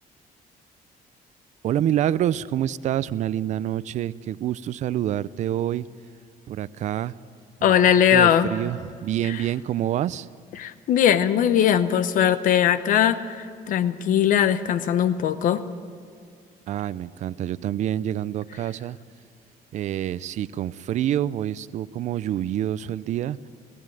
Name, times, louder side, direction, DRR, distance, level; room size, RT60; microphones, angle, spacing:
voice 1, 1.6-5.9 6.5-7.1 7.6-7.8 8.1-10.3 16.7-19.0 19.7-23.5, right 11 dB, 50° right, 18 dB, 0.5 m, -27 dB
voice 2, 7.6-8.5 10.6-15.6, left 9 dB, 60° left, 12 dB, 0.9 m, -20 dB
19.0 x 16.0 x 9.0 m, 2.2 s
cardioid pair, 175°, 15 cm